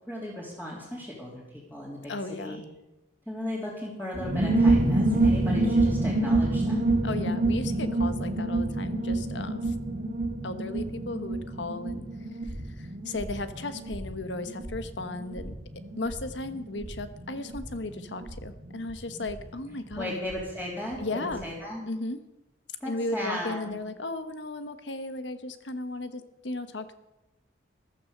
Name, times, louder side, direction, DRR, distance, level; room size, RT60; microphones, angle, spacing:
voice 1, 0.1-2.1 2.4-2.6 3.3-6.9 20.0-21.9 22.8-23.8, left 1 dB, 10° left, -6 dB, 3.2 m, -36 dB
voice 2, 2.1-2.6 7.0-9.7 10.4-12.1 12.8-15.5 16.0-20.2 21.0-21.5 21.8-22.2 22.9-26.9, left 2 dB, 75° left, 10 dB, 1.2 m, -35 dB
sound 1, 4.1-20.4 20.7-20.8 21.0-21.4, right 2 dB, 45° right, 2.2 m, -28 dB
14.0 x 13.0 x 6.6 m, 0.98 s
head